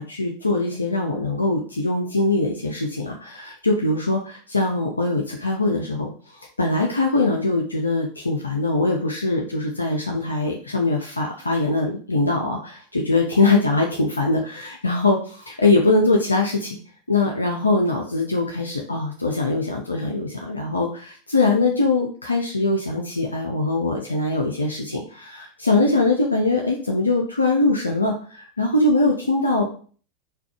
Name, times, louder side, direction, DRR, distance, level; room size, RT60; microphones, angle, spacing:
voice 1, 0.0-6.1 6.6-16.8 17.1-29.6, left 2 dB, 85° left, 0 dB, 0.4 m, -22 dB
3.5 x 2.3 x 2.3 m, 0.42 s
figure-of-eight pair, 85°, 0 cm